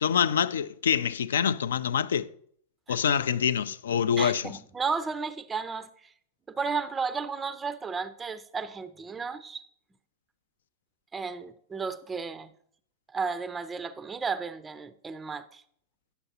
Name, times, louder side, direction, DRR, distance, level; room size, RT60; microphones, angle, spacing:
voice 1, 0.0-2.3 2.9-4.5, left 8 dB, 65° left, 0.3 m, -26 dB
voice 2, 4.2-5.9 6.5-9.6 11.1-12.5 13.1-15.6, right 5 dB, 15° right, 0.4 m, -33 dB
9.7 x 6.9 x 2.7 m
figure-of-eight pair, 90°, 0 cm